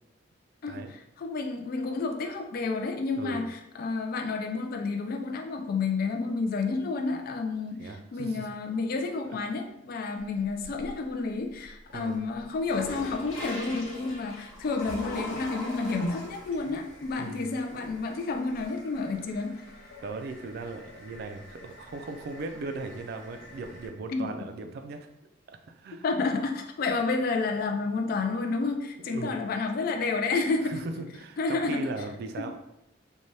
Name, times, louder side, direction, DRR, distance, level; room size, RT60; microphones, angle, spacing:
voice 1, 1.2-19.6 24.1-24.3 26.0-30.8 31.4-31.8 32.4-32.5, left 3 dB, 50° left, 4 dB, 0.3 m, -30 dB
voice 2, 3.1-3.5 7.8-8.5 9.2-9.4 11.9-12.2 17.2-17.6 20.0-25.1 25.5-26.0 29.0-29.4 30.6-32.6, right 3 dB, 55° right, 6 dB, 0.3 m, -38 dB
sound 1, 10.2-11.1 11.6-23.9, left 1 dB, 90° left, 0.8 m, -43 dB
2.7 x 2.2 x 3.1 m, 0.84 s
head